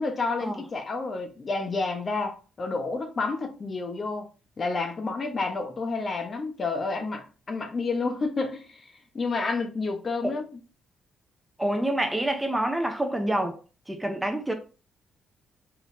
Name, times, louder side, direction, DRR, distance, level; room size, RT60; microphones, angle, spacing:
voice 1, 0.0-4.3 4.6-10.4, left 3 dB, 40° left, 1.1 m, -30 dB
voice 2, 11.6-13.6 13.9-14.5, right 1 dB, 10° right, 0.8 m, -27 dB
4.4 x 4.0 x 2.7 m
cardioid pair, 90°, 0 cm